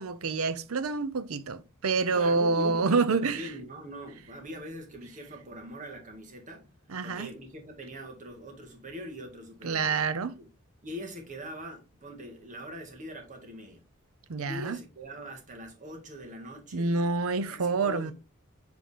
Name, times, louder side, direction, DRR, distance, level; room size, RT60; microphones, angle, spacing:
voice 1, 0.0-3.5 6.9-7.3 9.6-10.4 14.3-14.8 16.7-18.1, right 4 dB, 75° right, 0.6 m, -27 dB
voice 2, 2.1-6.7 7.0-10.1 10.4-10.5 10.8-13.8 14.4-17.2 17.5-18.1, equal, 35° right, 1.7 m, -42 dB
7.6 x 3.8 x 3.3 m
head